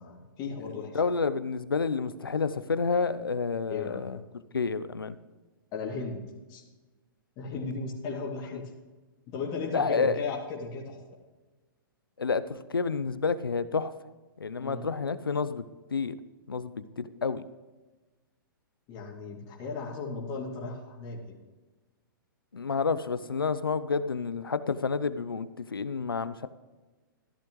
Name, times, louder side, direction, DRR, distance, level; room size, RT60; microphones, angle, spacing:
voice 1, 0.0-1.0 3.7-4.0 5.7-6.2 6.5-6.6 7.4-8.6 9.3-11.0 14.6-14.9 18.9-21.4, left 4 dB, 35° left, -2 dB, 2.7 m, -36 dB
voice 2, 0.7-4.2 4.5-5.2 8.5-8.6 9.7-10.2 12.2-13.9 14.4-15.6 15.9-16.1 16.5-17.4 22.5-26.5, left 5 dB, 90° left, 14 dB, 0.7 m, -29 dB
14.0 x 11.5 x 3.1 m, 1.2 s
hypercardioid pair, 120°, 12 cm